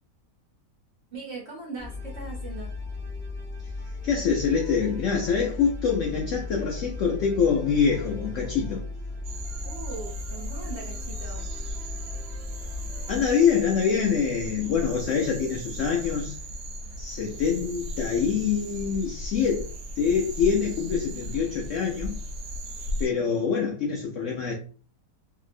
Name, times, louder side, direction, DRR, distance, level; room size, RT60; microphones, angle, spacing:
voice 1, 1.1-2.7 9.6-11.5, right 3 dB, 50° right, 0.8 m, -40 dB
sound 1, 1.8-13.3, left 3 dB, 5° left, 0.3 m, -36 dB
voice 2, 4.0-8.8 13.1-16.4 17.0-22.2 23.0-24.5, left 6 dB, 80° left, 0.6 m, -25 dB
sound 2, 9.2-23.1, equal, 75° right, 1.1 m, -37 dB
2.9 x 2.7 x 2.5 m
omnidirectional pair, 1.9 m